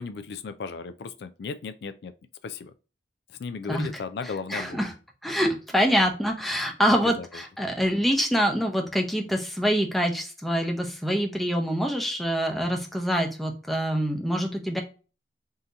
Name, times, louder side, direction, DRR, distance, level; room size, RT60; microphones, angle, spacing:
voice 1, 0.0-2.1 2.4-2.7 3.4-4.8 7.2-7.3, left 5 dB, 60° left, 0.3 m, -35 dB
voice 2, 3.7-4.0 4.5-4.9 5.2-14.8, equal, ahead, 0.6 m, -25 dB
3.7 x 2.8 x 3.8 m
head